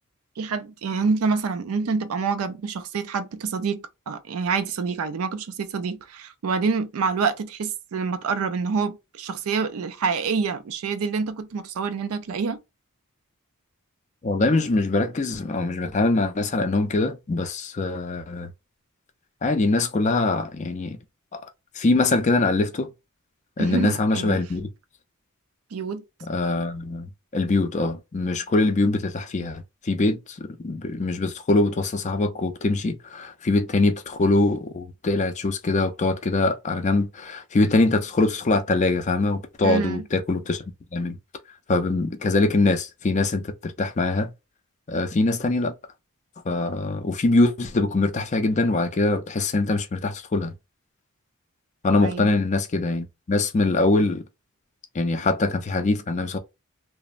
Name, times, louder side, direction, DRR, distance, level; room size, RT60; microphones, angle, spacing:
voice 1, 0.4-12.6 23.6-24.4 25.7-26.0 39.6-40.1 52.0-52.3, right 5 dB, 80° right, 0.4 m, -27 dB
voice 2, 14.2-18.5 19.4-21.0 21.3-21.4 21.8-22.9 23.6-24.7 26.2-27.1 27.3-40.6 40.9-41.2 41.7-44.3 44.9-45.7 46.5-50.5 51.8-54.2 55.0-56.4, left 2 dB, 35° left, 0.4 m, -23 dB
3.0 x 2.0 x 2.4 m
head